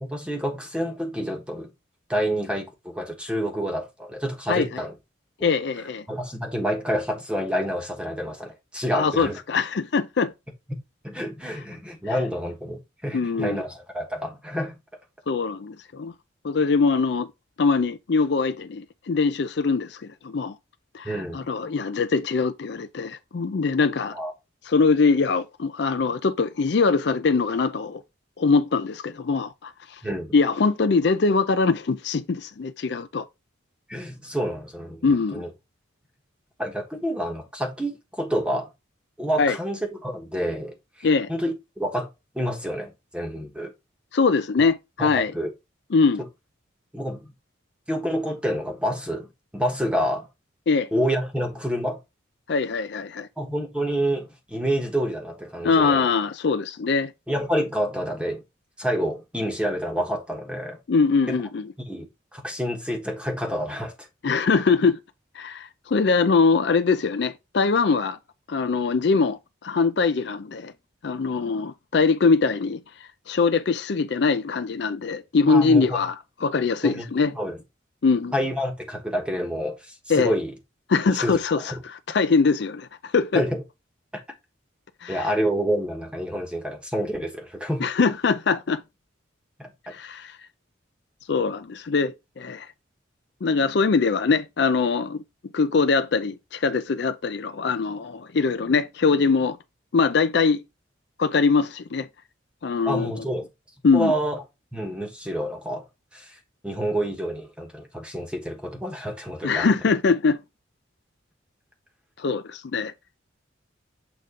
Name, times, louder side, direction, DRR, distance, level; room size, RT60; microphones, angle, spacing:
voice 1, 0.0-1.7 2.1-4.9 5.4-5.5 6.1-9.4 10.7-10.8 11.0-14.7 21.0-21.4 24.1-24.3 30.0-30.3 33.9-35.1 35.3-35.5 36.6-38.7 39.2-42.1 42.3-43.7 45.0-45.5 46.2-46.3 46.9-47.2 47.9-50.3 50.9-52.0 53.4-56.0 57.3-58.4 58.8-60.8 61.3-61.4 61.9-62.1 62.3-63.9 75.5-76.0 76.8-77.0 77.3-77.6 78.3-80.5 81.2-81.4 81.7-81.8 83.3-83.6 85.1-87.9 89.6-89.9 102.8-103.5 103.9-104.4 104.7-105.8 106.1-106.4 106.6-109.7, equal, 5° right, 1.2 m, -28 dB
voice 2, 4.5-4.8 5.4-6.1 8.9-10.3 13.1-13.6 15.3-16.1 16.4-17.3 17.6-20.6 20.9-24.1 24.7-28.0 28.4-30.0 30.3-33.2 35.0-35.4 39.4-39.6 41.0-41.3 44.1-45.3 45.9-46.2 50.7-50.9 52.5-53.3 55.6-57.1 60.9-61.7 64.2-65.0 65.3-68.2 68.5-70.7 71.0-72.8 73.3-77.3 78.0-78.3 80.1-80.3 80.9-83.4 85.0-85.3 87.8-88.8 89.9-90.4 91.3-92.7 93.4-95.2 95.5-99.6 99.9-100.6 101.2-102.1 102.6-103.2 103.8-104.1 109.4-110.4 112.2-112.9, left 4 dB, 55° left, 0.4 m, -22 dB
7.0 x 3.7 x 3.7 m
head